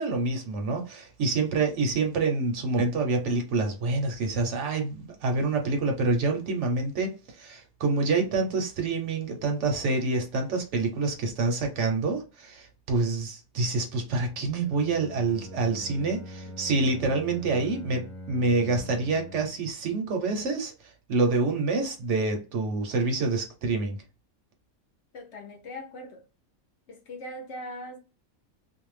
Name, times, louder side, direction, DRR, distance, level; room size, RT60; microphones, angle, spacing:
voice 1, 0.0-24.0, right 3 dB, 65° right, 0.9 m, -27 dB
Bowed string instrument, 14.6-19.7, equal, ahead, 0.4 m, -43 dB
voice 2, 25.1-26.3 26.9-28.0, left 1 dB, 60° left, 0.9 m, -40 dB
2.6 x 2.1 x 3.1 m
omnidirectional pair, 1.5 m